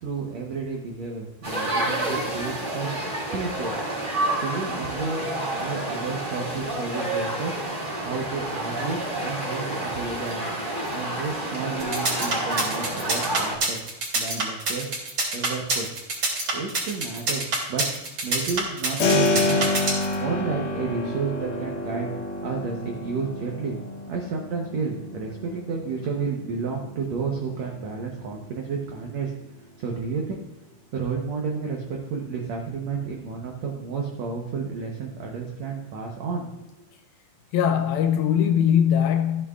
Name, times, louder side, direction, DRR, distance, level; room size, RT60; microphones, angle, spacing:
voice 1, 0.0-3.8 4.4-5.3 5.6-7.6 8.0-10.4 10.9-13.8 14.1-14.9 15.3-15.9 16.5-17.8 18.2-22.1 22.4-23.8 24.1-29.3 29.6-30.4 30.9-36.9, right 5 dB, 80° right, 1.5 m, -31 dB
sound 1, 1.4-13.6, right 1 dB, 20° right, 1.4 m, -29 dB
sound 2, 11.8-20.1, right 3 dB, 35° right, 2.6 m, -26 dB
Keyboard (musical), 19.0-29.7, left 2 dB, 65° left, 2.7 m, -29 dB
voice 2, 37.5-39.5, left 9 dB, 80° left, 2.2 m, -21 dB
13.5 x 8.6 x 2.4 m
omnidirectional pair, 4.6 m